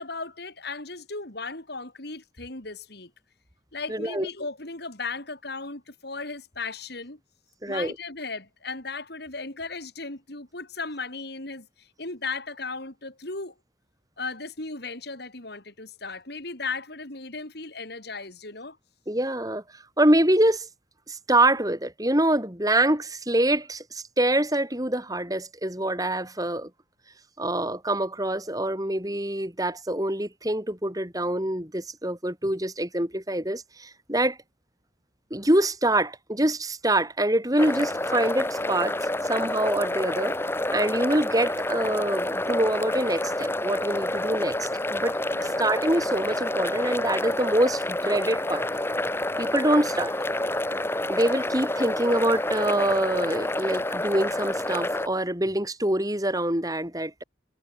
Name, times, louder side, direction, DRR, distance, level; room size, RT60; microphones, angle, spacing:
voice 1, 0.0-3.1 3.7-7.2 7.7-13.5 14.2-18.8 45.3-45.6, left 3 dB, 55° left, 3.5 m, -36 dB
voice 2, 3.9-4.3 7.6-7.9 19.1-20.7 21.1-26.7 27.4-34.4 35.3-40.4 40.7-48.7 49.4-50.1 51.1-57.2, right 1 dB, 20° right, 5.4 m, -25 dB
sound 1, 37.6-55.1, left 1 dB, 10° left, 1.8 m, -28 dB
head